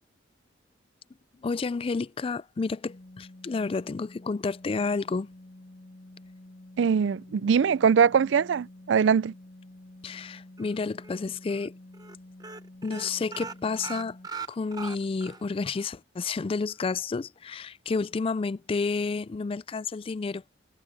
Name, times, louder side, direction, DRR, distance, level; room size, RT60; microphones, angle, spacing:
voice 1, 1.4-5.3 10.0-11.7 12.8-14.2 14.5-20.4, left 4 dB, 30° left, 0.3 m, -30 dB
sound 1, 2.8-14.3, left 1 dB, 50° left, 1.7 m, -49 dB
voice 2, 6.8-9.3, right 6 dB, 75° right, 0.4 m, -22 dB
sound 2, 10.6-11.2 11.5-11.7 11.9-12.2 12.4-15.4 15.8-15.9 16.2-16.3, right 4 dB, 20° right, 1.0 m, -40 dB
head